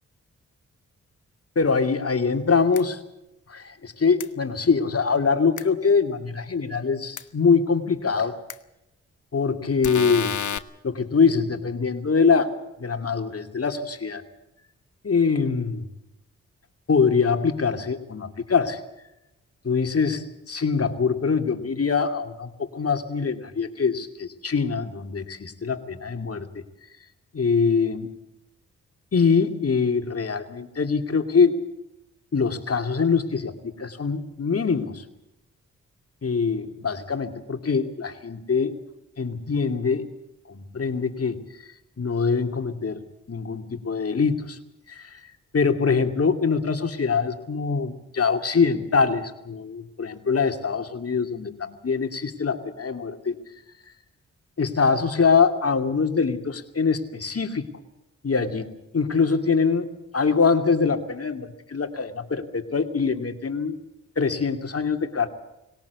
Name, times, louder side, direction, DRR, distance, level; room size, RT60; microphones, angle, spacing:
voice 1, 1.6-3.0 3.5-8.4 9.3-10.4 10.8-12.5 12.8-14.2 15.0-15.9 16.9-18.8 19.6-26.5 27.3-28.2 29.1-31.6 32.3-35.0 36.2-38.7 39.2-40.1 40.5-41.4 42.0-43.0 43.3-44.6 44.9-45.2 45.5-53.4 54.6-57.7 58.2-58.7 58.9-59.9 60.1-63.8 64.2-65.3, left 5 dB, 45° left, 6 dB, 2.6 m, -23 dB
sound 1, 2.7-2.8 4.2-4.3 5.6-5.7 7.2-7.3 8.5-8.6 9.8-10.6, left 9 dB, 65° left, 1.2 m, -29 dB
20.5 x 18.0 x 8.2 m, 0.91 s
supercardioid pair, 40°, 33 cm